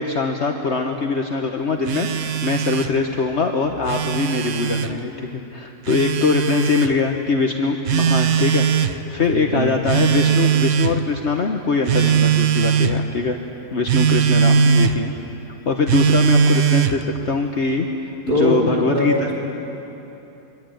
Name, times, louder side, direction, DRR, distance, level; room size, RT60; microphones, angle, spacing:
voice 1, 0.0-13.4 13.7-15.1 15.7-17.9 18.3-19.3, left 4 dB, 55° left, 3 dB, 1.5 m, -22 dB
Telephone, 1.9-3.0 3.7-4.9 5.9-6.9 7.9-9.0 9.9-11.0 11.9-13.0 13.9-15.0 15.9-17.0, right 7 dB, 85° right, 1.4 m, -19 dB
voice 2, 9.3-9.7 18.3-19.3, equal, 35° right, -3 dB, 3.2 m, -21 dB
24.5 x 24.5 x 9.1 m, 3.0 s
omnidirectional pair, 1.4 m